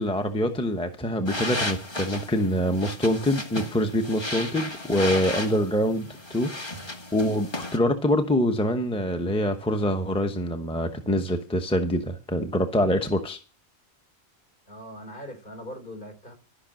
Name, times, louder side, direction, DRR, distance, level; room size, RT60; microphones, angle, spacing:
voice 1, 0.0-6.5 7.1-13.4, equal, 5° left, 6 dB, 0.9 m, -25 dB
sound 1, 1.3-7.8, left 2 dB, 25° left, 1.5 m, -34 dB
voice 2, 14.7-16.3, equal, 55° left, 4 dB, 4.1 m, -40 dB
13.0 x 6.0 x 7.6 m, 0.35 s
omnidirectional pair, 1.1 m